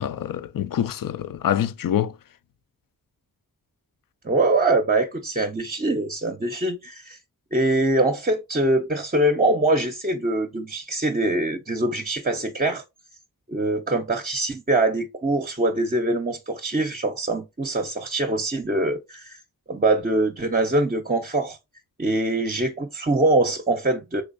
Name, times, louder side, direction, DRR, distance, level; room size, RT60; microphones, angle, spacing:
voice 1, 0.0-2.1, left 10 dB, 60° left, 0.5 m, -25 dB
voice 2, 4.2-7.2 7.5-12.8 13.5-19.4 19.7-21.6 22.0-24.2, right 2 dB, 25° right, 0.6 m, -23 dB
3.4 x 3.2 x 2.5 m
cardioid pair, 50°, 38 cm